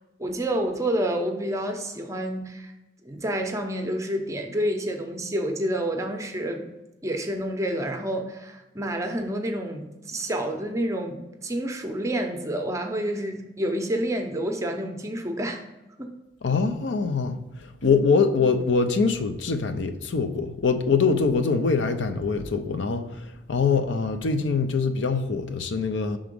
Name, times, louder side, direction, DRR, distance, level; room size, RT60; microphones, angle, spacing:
voice 1, 0.2-2.7 3.0-6.7 7.0-15.6 16.0-16.1 17.8-18.0, right 1 dB, 15° right, 0.6 m, -29 dB
voice 2, 16.4-26.2, left 4 dB, 75° left, 0.5 m, -24 dB
6.0 x 3.7 x 5.2 m
head